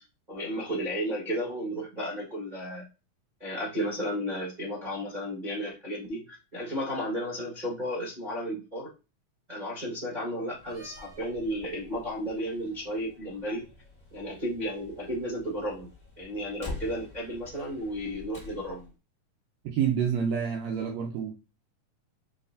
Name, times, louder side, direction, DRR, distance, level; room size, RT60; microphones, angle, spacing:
voice 1, 0.0-2.9 3.4-8.9 9.5-13.6 14.1-15.9 16.2-18.9, equal, 60° right, 0.4 m, -33 dB
Slam, 10.5-18.9, left 2 dB, 25° left, 0.9 m, -47 dB
voice 2, 19.6-21.3, right 7 dB, 85° right, 1.5 m, -28 dB
6.1 x 3.1 x 2.6 m
omnidirectional pair, 3.8 m